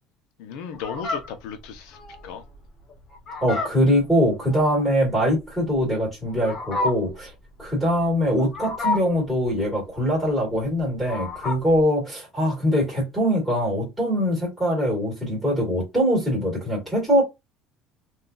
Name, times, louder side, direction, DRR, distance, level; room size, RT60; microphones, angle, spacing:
voice 1, 0.4-2.4, left 7 dB, 75° left, 0.8 m, -36 dB
Fowl, 0.7-11.8, left 3 dB, 25° left, 0.9 m, -32 dB
voice 2, 3.4-7.3 7.6-17.2, equal, ahead, 2.0 m, -22 dB
3.8 x 2.6 x 2.5 m
cardioid pair, 165°, 0 cm